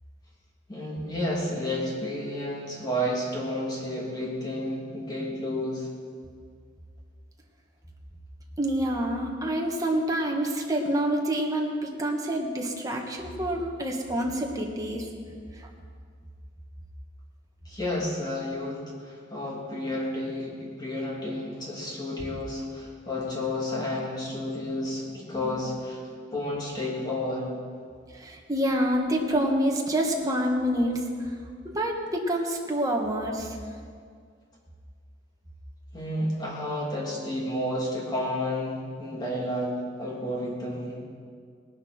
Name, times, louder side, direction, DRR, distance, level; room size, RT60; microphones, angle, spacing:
voice 1, 0.7-5.9 17.6-26.0 26.3-27.5 35.9-41.0, left 1 dB, 20° left, -4 dB, 3.1 m, -31 dB
voice 2, 8.6-15.1 28.1-31.3 31.6-33.6, right 1 dB, 20° right, 0 dB, 1.6 m, -27 dB
18.5 x 11.5 x 4.4 m, 2.1 s
head